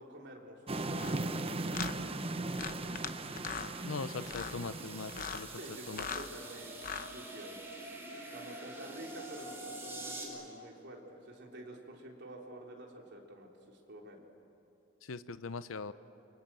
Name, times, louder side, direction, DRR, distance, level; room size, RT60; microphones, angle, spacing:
voice 1, 0.0-1.9 5.6-7.6 8.3-14.3, right 1 dB, 55° right, -1 dB, 3.8 m, -49 dB
sound 1, 0.7-7.4, right 2 dB, 30° right, 0.9 m, -39 dB
sound 2, 0.9-1.1 1.7-1.9 2.5-3.1 3.4-3.7 4.2-4.6 5.1-5.4 5.9-6.3 6.7-7.1, left 7 dB, 45° left, 0.9 m, -40 dB
sound 3, 2.5-10.2, right 1 dB, 10° right, 4.8 m, -47 dB
voice 2, 3.8-5.5 5.9-6.1 15.1-15.9, left 4 dB, 80° left, 13 dB, 0.7 m, -40 dB
29.0 x 24.5 x 7.7 m, 2.9 s
head